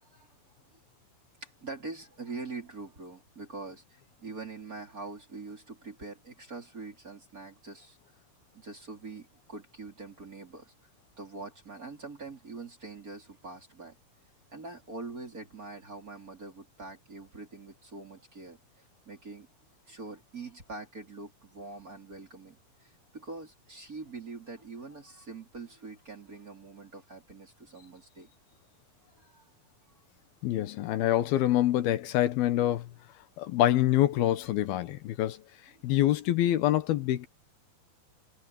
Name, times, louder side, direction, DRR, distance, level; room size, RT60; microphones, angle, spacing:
voice 1, 1.4-8.0 8.5-10.7 11.2-14.0 14.5-19.5 19.9-28.3 29.1-29.5, right 3 dB, 25° right, 3.6 m, -44 dB
voice 2, 30.4-32.9 33.4-35.4 35.8-37.3, left 13 dB, 85° left, 3.1 m, -26 dB
omnidirectional pair, 4.3 m